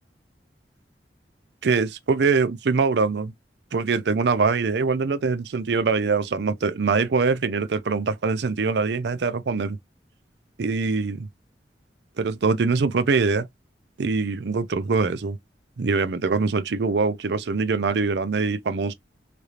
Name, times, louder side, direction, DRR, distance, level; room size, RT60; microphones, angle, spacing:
voice 1, 1.6-3.3 3.7-9.8 10.6-11.3 12.2-13.5 14.0-15.4 15.8-18.9, right 4 dB, 65° right, 0.5 m, -23 dB
3.3 x 2.5 x 2.8 m
head